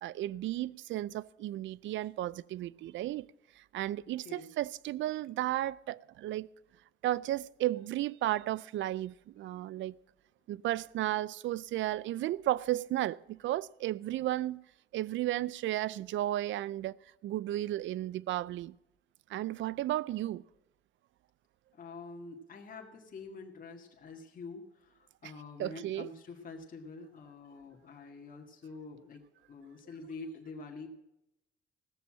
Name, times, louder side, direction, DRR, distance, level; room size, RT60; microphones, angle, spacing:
voice 1, 0.0-3.3 3.6-6.5 7.0-10.0 10.5-14.6 14.9-18.7 19.3-20.4 25.2-25.3 25.6-26.1, right 14 dB, 70° right, 0.4 m, -34 dB
voice 2, 21.7-29.2 29.5-30.9, left 3 dB, 45° left, 1.9 m, -46 dB
16.5 x 7.0 x 7.4 m
cardioid pair, 90°, 20 cm